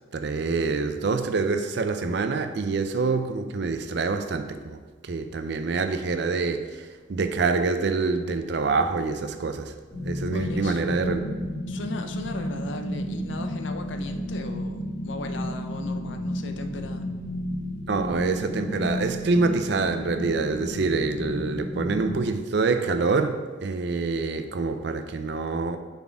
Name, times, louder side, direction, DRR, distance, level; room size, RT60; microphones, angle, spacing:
voice 1, 0.1-4.8 5.0-9.7 10.0-11.2 17.9-25.8, right 4 dB, 60° right, 8 dB, 0.5 m, -26 dB
sound 1, 9.9-22.1, left 1 dB, 30° right, 2.0 m, -32 dB
voice 2, 10.3-10.8 11.7-17.1, left 2 dB, 70° left, 6 dB, 0.5 m, -37 dB
7.0 x 4.2 x 4.6 m, 1.4 s
head